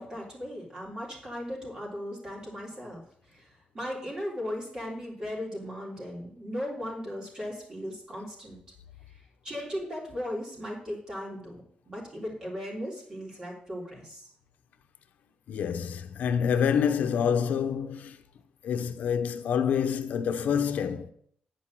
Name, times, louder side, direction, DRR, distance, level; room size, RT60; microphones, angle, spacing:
voice 1, 0.0-8.6 9.4-14.3, equal, 30° right, 3.4 m, -37 dB
voice 2, 15.5-18.2 18.6-21.1, left 7 dB, 75° left, 0.8 m, -27 dB
10.0 x 5.2 x 7.5 m
wide cardioid pair, 170°, 3 cm